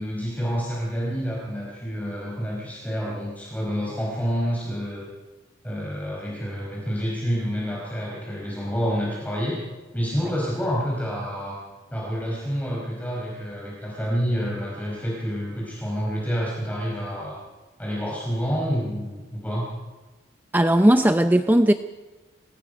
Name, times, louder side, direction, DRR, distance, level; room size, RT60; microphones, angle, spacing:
voice 1, 0.0-5.1 5.6-9.6 9.9-11.6 11.9-17.4 17.8-19.7, equal, 10° left, -4 dB, 4.8 m, -28 dB
voice 2, 20.5-21.7, right 1 dB, 10° right, 8 dB, 0.5 m, -17 dB
27.0 x 18.5 x 5.3 m, 1.2 s
head